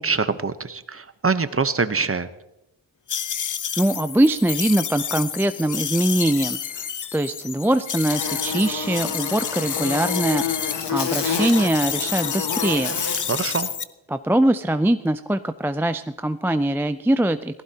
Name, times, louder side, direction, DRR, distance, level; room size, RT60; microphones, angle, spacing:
voice 1, 0.0-2.3 13.3-13.7, right 4 dB, 30° right, 11 dB, 0.9 m, -24 dB
sound 1, 3.1-10.9 11.2-13.8, left 8 dB, 45° left, 0.7 m, -29 dB
voice 2, 3.8-6.9 7.1-10.4 10.9-13.0 14.1-17.6, right 1 dB, 5° right, 10 dB, 0.4 m, -22 dB
Buzz, 8.1-13.7, left 6 dB, 65° left, 1.5 m, -29 dB
18.0 x 15.0 x 2.9 m, 0.90 s
cardioid pair, 60°, 45 cm